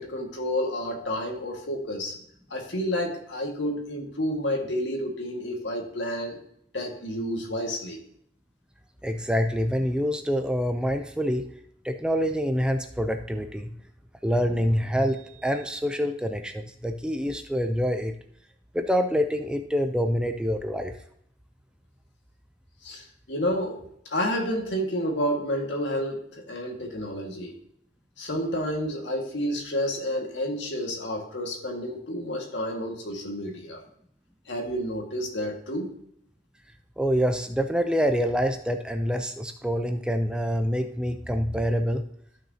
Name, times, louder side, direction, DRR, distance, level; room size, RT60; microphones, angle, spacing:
voice 1, 0.0-2.2 2.5-6.4 6.7-8.0 22.8-27.5 28.2-33.8 34.5-35.9, equal, 80° left, 2 dB, 1.8 m, -30 dB
voice 2, 9.0-11.5 11.8-13.7 14.2-18.1 18.7-20.9 37.0-42.0, equal, 5° right, 6 dB, 0.5 m, -26 dB
13.0 x 6.0 x 2.8 m, 0.69 s
head